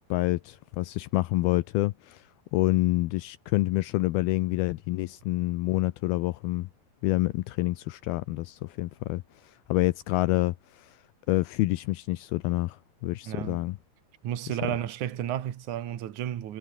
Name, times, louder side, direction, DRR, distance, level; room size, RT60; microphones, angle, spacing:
voice 1, 0.1-6.7 7.0-11.0 11.3-13.8 14.5-14.6, left 18 dB, 80° left, 2.6 m, -28 dB
voice 2, 13.3-13.6 14.2-16.6, right 11 dB, 55° right, 2.9 m, -32 dB
omnidirectional pair, 4.5 m